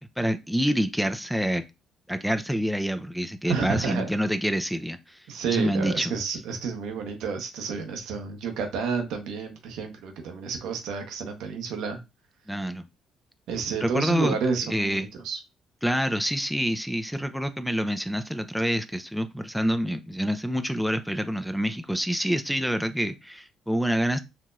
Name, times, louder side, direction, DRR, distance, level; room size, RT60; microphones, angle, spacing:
voice 1, 0.2-1.6 2.1-5.2 5.5-6.4 12.5-12.9 13.8-14.4 14.6-15.1 15.8-24.2, equal, ahead, 0.5 m, -27 dB
voice 2, 3.5-4.1 5.3-12.0 13.5-15.4, right 5 dB, 70° right, 0.8 m, -30 dB
4.5 x 2.8 x 2.5 m
hypercardioid pair, 50°, 0 cm